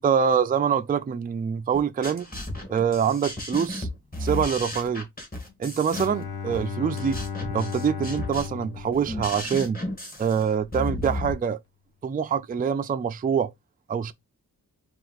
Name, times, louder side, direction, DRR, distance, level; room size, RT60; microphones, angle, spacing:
voice 1, 0.0-2.3 2.7-3.9 4.2-5.1 5.6-7.2 7.5-9.8 10.2-11.6 12.0-13.5 13.9-14.1, right 7 dB, 25° right, 0.4 m, -25 dB
sound 1, 1.7-11.3, left 1 dB, 25° left, 1.8 m, -34 dB
Bowed string instrument, 5.9-9.9, left 6 dB, 80° left, 1.0 m, -35 dB
4.5 x 2.5 x 3.9 m
cardioid pair, 90°, 36 cm